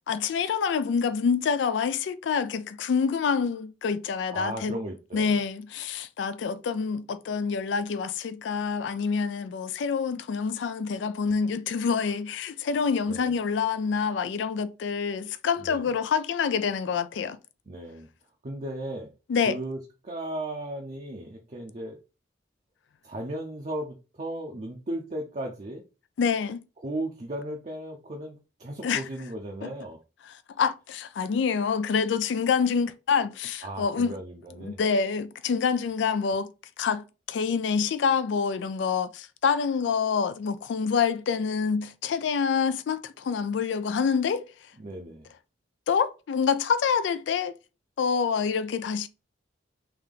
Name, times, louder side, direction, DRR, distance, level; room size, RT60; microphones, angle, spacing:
voice 1, 0.1-4.8 5.1-17.4 19.3-19.6 26.2-26.6 28.8-29.0 29.6-29.7 30.2-34.2 34.6-36.5 36.8-44.5 45.9-47.6 48.0-49.1, left 6 dB, 70° left, 0.3 m, -27 dB
voice 2, 4.3-5.4 13.1-13.3 15.6-15.9 17.7-18.1 18.4-19.1 19.5-19.8 20.0-22.0 23.0-25.8 26.8-30.0 33.6-34.8 44.8-45.3, right 1 dB, 40° right, 0.6 m, -36 dB
3.5 x 2.8 x 3.7 m
head